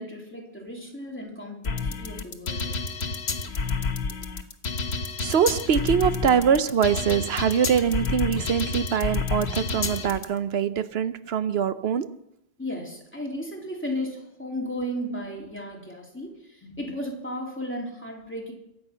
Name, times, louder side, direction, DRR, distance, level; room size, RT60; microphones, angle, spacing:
voice 1, 0.0-2.7 12.6-18.5, equal, 10° left, 3.0 m, -34 dB
sound 1, 1.6-10.2, left 4 dB, 85° left, 1.4 m, -29 dB
voice 2, 5.2-12.2, right 8 dB, 80° right, 1.0 m, -23 dB
23.0 x 8.0 x 5.7 m
omnidirectional pair, 1.0 m